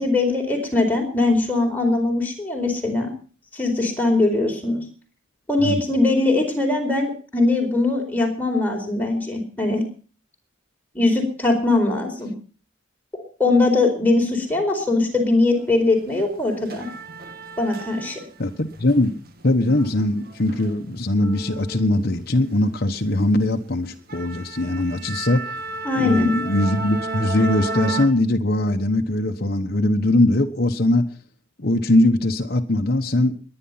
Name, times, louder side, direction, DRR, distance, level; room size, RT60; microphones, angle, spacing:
voice 1, 0.0-3.1 3.5-4.8 5.5-9.8 10.9-12.3 13.4-16.9 17.6-18.2 25.8-26.3, left 2 dB, 10° left, 0 dB, 4.5 m, -21 dB
sound 1, 15.5-15.7 16.1-18.5 18.8-22.6 23.0-23.2 23.6-23.7 24.1-28.1, right 3 dB, 50° right, 2.0 m, -33 dB
voice 2, 18.4-19.1 19.4-25.4 25.9-31.1 31.6-33.4, left 1 dB, 55° left, 3 dB, 1.2 m, -21 dB
21.5 x 10.0 x 5.8 m, 0.40 s
head